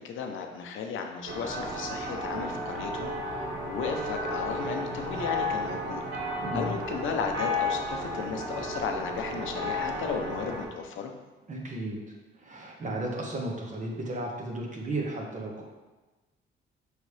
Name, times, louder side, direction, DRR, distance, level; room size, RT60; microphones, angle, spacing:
voice 1, 0.0-6.0 6.5-11.1, left 6 dB, 80° left, 4 dB, 0.8 m, -35 dB
sound 1, 1.2-10.6, left 1 dB, 75° right, 2.0 m, -33 dB
voice 2, 6.4-6.8 11.5-12.0 12.4-15.6, right 1 dB, 40° right, -1 dB, 1.5 m, -34 dB
6.5 x 5.0 x 3.4 m, 1.2 s
cardioid pair, 90°, 20 cm